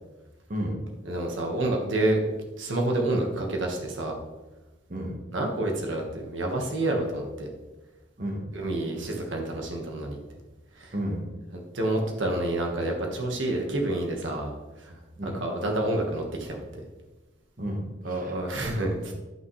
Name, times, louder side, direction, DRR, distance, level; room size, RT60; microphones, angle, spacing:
voice 1, 0.5-0.8 4.9-5.1 8.2-8.5 10.9-11.3 15.2-15.4 17.6-18.4, equal, 45° right, 0 dB, 1.2 m, -32 dB
voice 2, 1.0-2.2 2.6-4.1 5.3-7.5 8.5-10.2 10.8-10.9 11.5-14.5 14.8-15.0 15.2-16.6 18.0-19.1, right 1 dB, 85° right, 1 dB, 1.4 m, -28 dB
10.5 x 6.1 x 3.2 m, 1.1 s
head